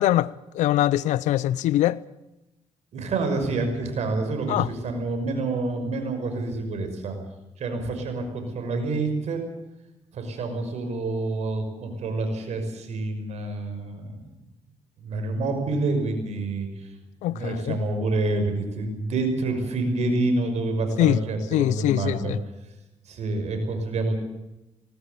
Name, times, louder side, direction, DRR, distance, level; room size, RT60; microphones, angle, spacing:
voice 1, 0.0-2.0 4.5-4.7 17.2-17.8 21.0-21.2 21.5-22.4, left 14 dB, 85° left, 0.7 m, -23 dB
voice 2, 2.9-7.1 7.6-9.4 10.1-14.3 15.0-16.9 17.3-22.3 23.1-24.2, right 2 dB, 65° right, 6.0 m, -27 dB
19.0 x 19.0 x 8.3 m
supercardioid pair, 65°, 12 cm